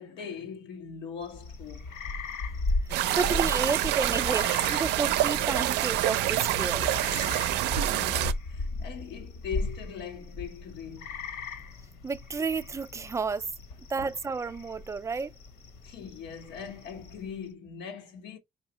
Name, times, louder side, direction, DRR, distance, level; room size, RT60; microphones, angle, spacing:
voice 1, 0.0-1.9 7.7-11.2 13.9-14.1 15.8-18.4, left 7 dB, 85° left, 1.0 m, -40 dB
sound 1, 1.2-17.4, left 3 dB, 65° left, 1.2 m, -37 dB
sound 2, 2.9-8.3, right 14 dB, 80° right, 0.4 m, -27 dB
voice 2, 3.2-6.9 12.0-13.5 13.9-15.3, right 4 dB, 15° right, 0.4 m, -31 dB
4.8 x 2.9 x 2.9 m
cardioid pair, 110°, 17 cm